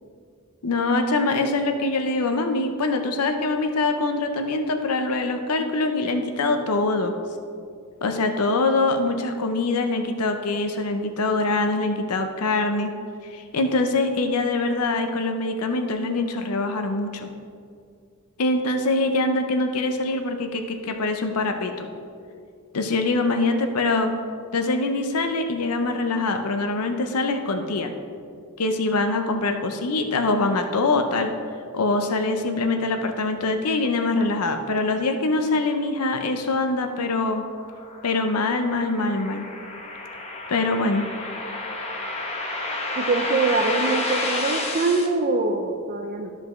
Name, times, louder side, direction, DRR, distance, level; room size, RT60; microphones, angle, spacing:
voice 1, 0.6-7.1 8.0-12.9 13.3-17.3 18.4-21.9 22.7-24.2 24.5-27.9 28.6-31.3 31.7-37.4 38.0-39.5 40.5-41.1, left 3 dB, 80° left, 6 dB, 0.6 m, -24 dB
sound 1, 37.3-45.1, left 2 dB, 30° left, 1.0 m, -30 dB
voice 2, 43.0-46.3, right 3 dB, 40° right, 2 dB, 0.5 m, -24 dB
12.5 x 5.3 x 3.1 m, 2.3 s
head